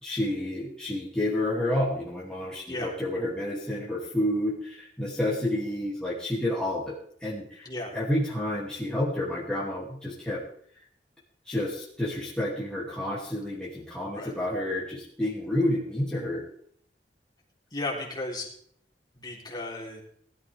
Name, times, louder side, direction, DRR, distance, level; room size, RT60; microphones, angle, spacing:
voice 1, 0.0-10.4 11.5-16.4, left 1 dB, 5° left, -7 dB, 2.8 m, -30 dB
voice 2, 7.7-8.0 14.1-14.3 17.7-18.5 19.1-20.0, left 2 dB, 25° left, -2 dB, 3.6 m, -34 dB
19.5 x 13.0 x 3.6 m, 0.65 s
head